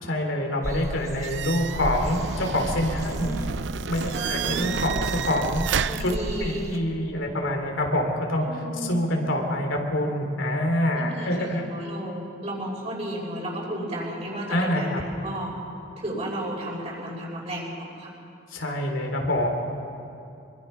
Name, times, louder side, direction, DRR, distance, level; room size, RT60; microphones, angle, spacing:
voice 1, 0.0-3.3 3.9-5.7 6.0-6.1 6.4-11.6 14.5-15.0 18.5-19.5, left 1 dB, 90° left, 2 dB, 3.3 m, -26 dB
sound 1, 0.6-6.8, equal, 15° right, 1.1 m, -35 dB
sound 2, 1.2-6.1, right 7 dB, 65° right, 0.5 m, -31 dB
voice 2, 4.1-4.7 5.9-6.7 8.4-8.9 10.9-15.5 16.0-18.1, right 1 dB, 35° right, -3 dB, 5.7 m, -33 dB
25.0 x 23.5 x 5.7 m, 2.7 s
head